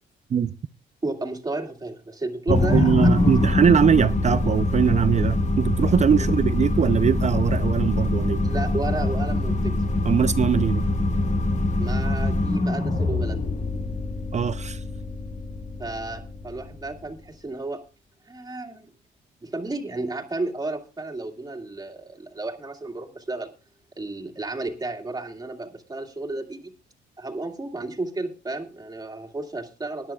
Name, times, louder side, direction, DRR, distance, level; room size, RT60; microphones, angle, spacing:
voice 1, 1.0-2.9 3.2-3.3 8.4-9.7 11.8-13.5 15.8-17.8 18.3-18.9 19.4-23.5 24.0-26.7 27.2-30.1, right 2 dB, 20° right, 2.0 m, -32 dB
sound 1, 2.5-17.0, left 2 dB, 35° left, 1.3 m, -24 dB
voice 2, 2.5-8.4 10.1-10.8 14.3-14.8, right 7 dB, 35° right, 0.5 m, -21 dB
21.0 x 10.5 x 2.3 m
cardioid pair, 90°, 20 cm